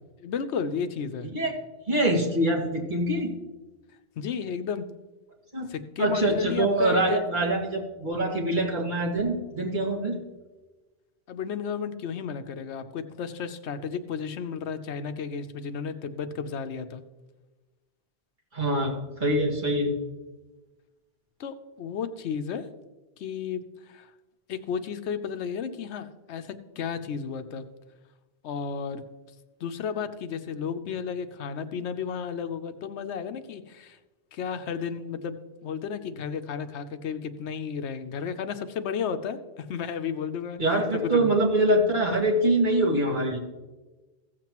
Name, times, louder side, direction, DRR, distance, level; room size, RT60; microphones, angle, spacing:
voice 1, 0.2-1.3 4.2-4.9 5.7-7.3 11.3-17.0 21.4-22.7 23.2-24.1 24.5-27.7 28.4-29.0 29.6-34.0 34.3-40.6 40.9-41.3, left 6 dB, 85° left, 9 dB, 1.0 m, -33 dB
voice 2, 1.9-3.3 5.5-5.7 6.0-10.2 18.5-19.9 40.6-43.4, right 1 dB, 45° right, -3 dB, 2.2 m, -24 dB
15.5 x 7.5 x 3.0 m, 1.2 s
omnidirectional pair, 1.1 m